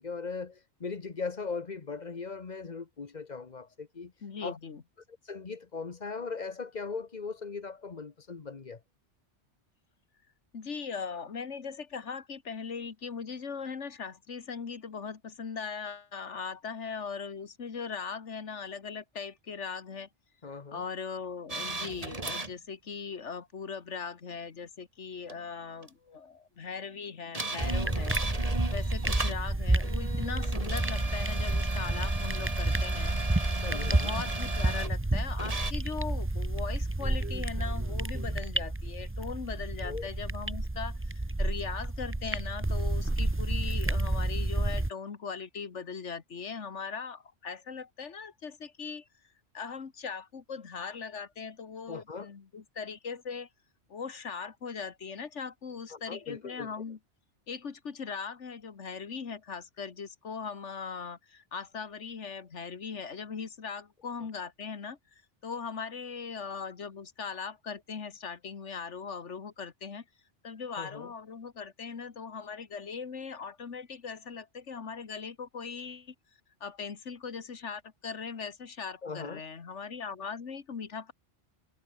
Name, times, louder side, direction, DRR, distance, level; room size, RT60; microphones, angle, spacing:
voice 1, 0.0-4.1 4.4-4.6 5.2-8.8 20.4-20.8 33.6-34.1 39.8-40.1 51.9-52.3 55.9-56.7 70.8-71.1 79.0-79.4, left 4 dB, 40° left, 1.3 m, -39 dB
voice 2, 4.2-4.8 10.5-20.1 20.7-28.2 28.7-33.4 33.7-49.1 49.5-53.5 53.9-57.0 57.5-70.1 70.4-76.2 76.6-81.1, left 5 dB, 85° left, 1.9 m, -39 dB
sound 1, 21.5-22.5 25.3-25.4 25.8-25.9 27.3-29.4 29.8-34.9 35.4-35.7, right 2 dB, 30° right, 2.1 m, -37 dB
sound 2, 27.6-44.9, right 2 dB, 10° right, 1.0 m, -30 dB
omnidirectional pair, 1.2 m